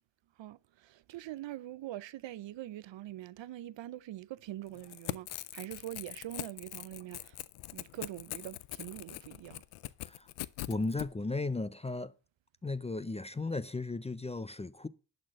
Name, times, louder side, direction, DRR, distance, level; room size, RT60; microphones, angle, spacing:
voice 1, 0.4-7.4 7.7-9.6, right 14 dB, 70° right, 0.6 m, -44 dB
Crackle / Tearing, 4.7-11.1, left 16 dB, 90° left, 0.6 m, -42 dB
voice 2, 10.7-12.1 12.6-14.9, left 3 dB, 15° left, 0.5 m, -35 dB
11.5 x 4.4 x 7.3 m
cardioid pair, 70°, 48 cm